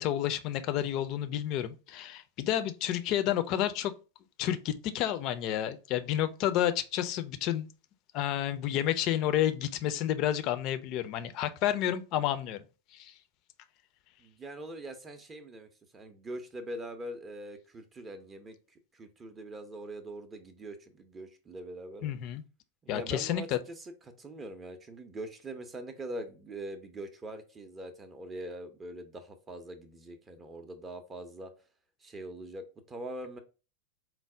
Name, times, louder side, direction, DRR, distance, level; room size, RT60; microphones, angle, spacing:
voice 1, 0.0-3.9 4.4-7.7 8.1-12.6 12.9-13.1 22.0-22.4 22.9-23.6, left 11 dB, 40° left, 0.4 m, -30 dB
voice 2, 14.2-18.6 18.9-22.1 22.8-23.9 24.2-31.5 32.0-33.4, right 1 dB, 20° right, 0.5 m, -43 dB
4.5 x 2.0 x 3.6 m
figure-of-eight pair, 90°, 0 cm